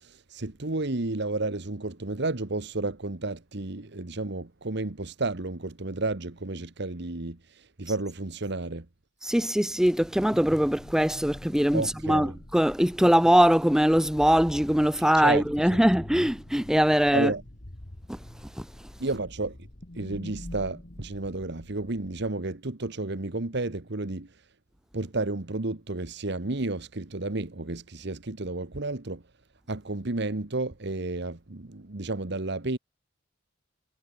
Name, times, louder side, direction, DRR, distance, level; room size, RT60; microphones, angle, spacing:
voice 1, 0.0-8.9 11.7-12.4 15.2-15.8 17.1-17.4 19.0-19.6 19.9-24.4 24.9-29.2 29.7-32.8, right 2 dB, 60° right, 1.4 m, -32 dB
voice 2, 9.2-17.3 18.1-18.2, equal, 5° right, 0.7 m, -22 dB
sound 1, 9.9-22.3, left 1 dB, 40° left, 1.9 m, -45 dB
head